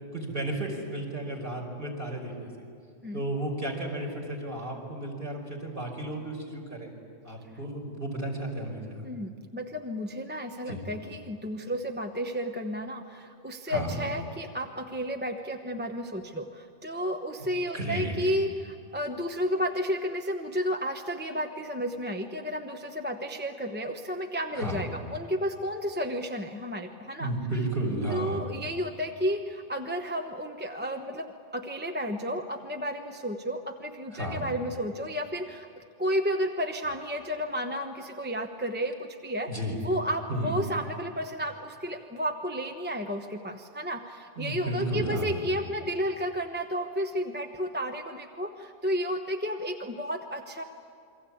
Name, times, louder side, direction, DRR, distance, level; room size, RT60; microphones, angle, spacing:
voice 1, 0.1-2.5 3.1-6.9 7.2-9.0 10.7-10.8 13.7-13.9 17.7-18.1 24.5-24.9 27.2-28.4 34.1-34.5 39.5-39.8 40.3-40.6 44.4-45.4, right 1 dB, 45° right, 0 dB, 5.5 m, -33 dB
voice 2, 9.0-27.3 28.1-35.7 36.0-39.5 39.8-50.6, equal, 10° right, 4 dB, 1.0 m, -32 dB
28.0 x 23.5 x 8.6 m, 2.3 s
omnidirectional pair, 1.3 m